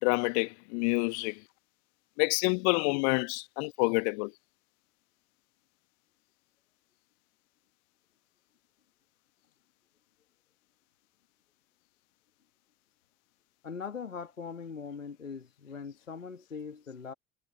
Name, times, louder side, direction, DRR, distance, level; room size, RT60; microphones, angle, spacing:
voice 1, 0.0-1.4 2.2-4.3, left 35 dB, 60° left, 1.4 m, -28 dB
voice 2, 13.6-17.1, left 6 dB, 85° left, 1.7 m, -41 dB
figure-of-eight pair, 60°, 38 cm